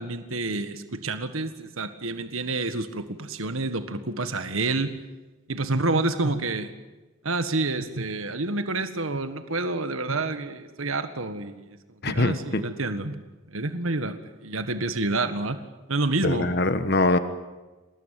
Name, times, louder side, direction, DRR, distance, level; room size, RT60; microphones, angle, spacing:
voice 1, 0.0-4.9 5.5-6.7 7.2-11.8 12.1-13.2 13.5-15.6 15.9-16.5, right 2 dB, 85° right, 9 dB, 1.7 m, -28 dB
voice 2, 12.0-12.6 16.2-17.2, left 2 dB, 50° left, 10 dB, 1.4 m, -23 dB
27.5 x 19.5 x 9.2 m, 1.2 s
head